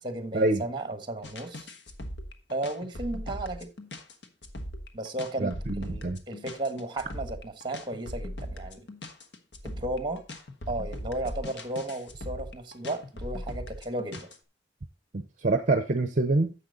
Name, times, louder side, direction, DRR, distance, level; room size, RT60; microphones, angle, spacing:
voice 1, 0.0-1.7 2.5-3.7 4.9-8.9 9.6-10.2 10.7-14.3, right 1 dB, 25° right, 1.3 m, -34 dB
sound 1, 1.2-14.4, equal, 70° left, 1.3 m, -39 dB
voice 2, 5.4-6.2 15.1-16.5, right 2 dB, 45° right, 0.7 m, -26 dB
10.0 x 7.3 x 3.9 m
head